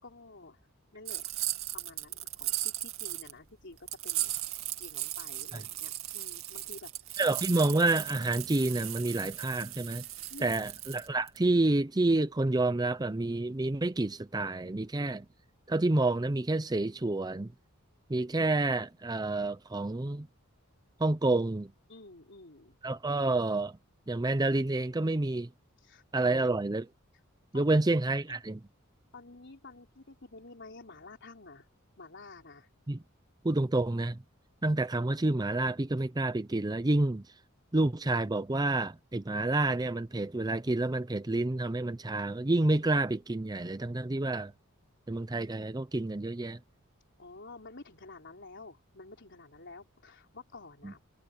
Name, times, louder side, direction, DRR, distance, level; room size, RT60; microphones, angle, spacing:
voice 1, 0.0-0.6 0.9-1.3 1.7-3.8 4.0-7.2 10.3-10.6 21.9-22.8 25.8-26.5 27.5-27.8 29.1-31.7 32.0-32.7 47.2-51.0, left 3 dB, 55° left, 4.1 m, -50 dB
sound 1, 1.1-3.3 3.9-11.4, right 15 dB, 70° right, 2.4 m, -37 dB
voice 2, 7.2-10.0 10.4-15.3 15.7-17.5 18.1-20.3 21.0-21.7 22.8-23.8 24.1-25.5 26.1-26.9 27.5-28.6 32.9-33.0 33.4-34.2 34.6-37.2 37.7-44.5 45.1-46.6 50.8-50.9, right 2 dB, 20° right, 0.6 m, -29 dB
head